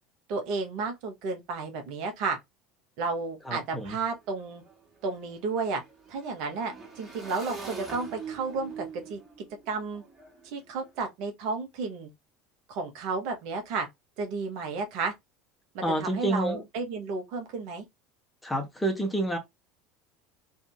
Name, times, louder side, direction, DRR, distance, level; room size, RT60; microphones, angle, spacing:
voice 1, 0.3-2.4 3.0-4.6 5.0-5.8 6.1-9.2 9.7-10.0 10.4-12.1 12.7-13.9 14.2-15.1 15.7-17.8, right 4 dB, 65° right, 1.0 m, -32 dB
voice 2, 3.4-4.0 15.8-16.6 18.4-19.4, right 1 dB, 5° left, 1.0 m, -29 dB
Motorcycle / Engine, 3.4-3.5 3.8-10.9, right 5 dB, 20° right, 1.5 m, -44 dB
2.7 x 2.6 x 2.2 m
hypercardioid pair, 85°, 0 cm